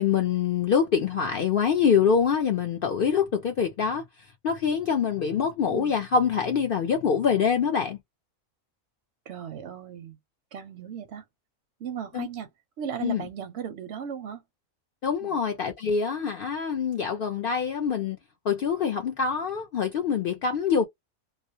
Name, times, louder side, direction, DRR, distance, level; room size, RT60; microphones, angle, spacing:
voice 1, 0.0-4.0 4.4-8.0 12.1-12.3 13.0-13.3 15.0-18.2 18.5-20.8, left 6 dB, 70° left, 0.5 m, -25 dB
voice 2, 9.3-10.2 10.5-11.2 11.8-12.5 12.8-14.4 15.2-15.4, right 8 dB, 65° right, 0.7 m, -36 dB
2.3 x 2.0 x 2.6 m
omnidirectional pair, 1.4 m